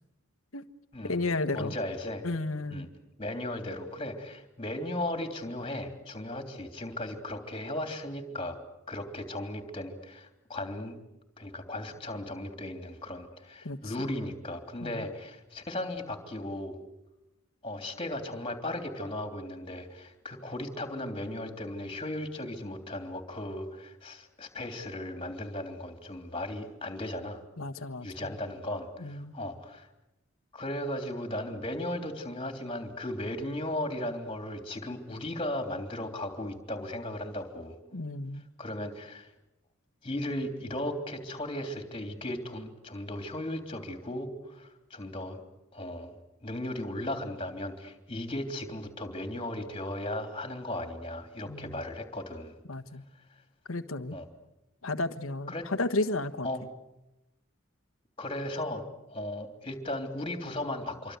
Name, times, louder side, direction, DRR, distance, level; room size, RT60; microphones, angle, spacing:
voice 1, 1.0-1.7 2.2-2.9 13.6-14.1 14.8-15.1 27.6-28.3 29.0-29.3 37.9-38.4 51.5-51.8 52.7-53.0 53.7-54.2 54.8-56.7, left 2 dB, 75° left, 8 dB, 1.4 m, -33 dB
voice 2, 1.5-2.2 2.7-2.9 3.2-8.6 8.9-11.0 11.4-16.8 17.6-27.4 28.0-29.9 30.5-37.8 38.6-39.3 40.0-45.4 45.7-52.5 54.1-54.2 55.5-55.7 56.4-56.6 58.2-61.2, left 1 dB, 25° left, 5 dB, 3.3 m, -36 dB
26.5 x 24.5 x 8.2 m, 0.95 s
head